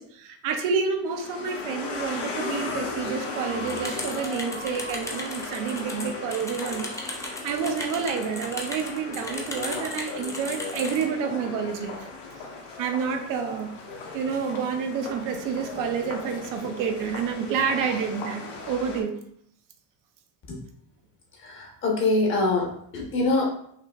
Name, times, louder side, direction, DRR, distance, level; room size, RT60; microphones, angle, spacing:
voice 1, 0.0-12.1 12.8-13.7 14.1-19.2, right 6 dB, 65° right, 5 dB, 0.6 m, -29 dB
sound 1, 1.1-19.0, left 3 dB, 80° left, 1.1 m, -37 dB
sound 2, 3.7-11.0, left 2 dB, 10° left, 0.4 m, -36 dB
voice 2, 21.4-23.5, left 2 dB, 35° left, -1 dB, 1.1 m, -24 dB
5.5 x 2.8 x 2.4 m, 0.67 s
cardioid pair, 160°, 35 cm